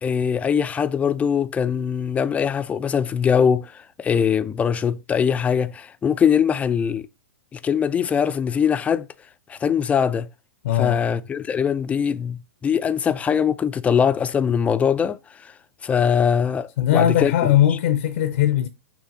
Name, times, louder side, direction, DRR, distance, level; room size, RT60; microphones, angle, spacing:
voice 1, 0.0-7.1 7.5-9.1 9.5-10.3 10.7-15.5 15.8-17.5, left 7 dB, 15° left, 0.4 m, -22 dB
voice 2, 10.6-11.0 16.8-18.7, left 11 dB, 60° left, 0.6 m, -19 dB
6.4 x 2.8 x 5.2 m
hypercardioid pair, 110°, 8 cm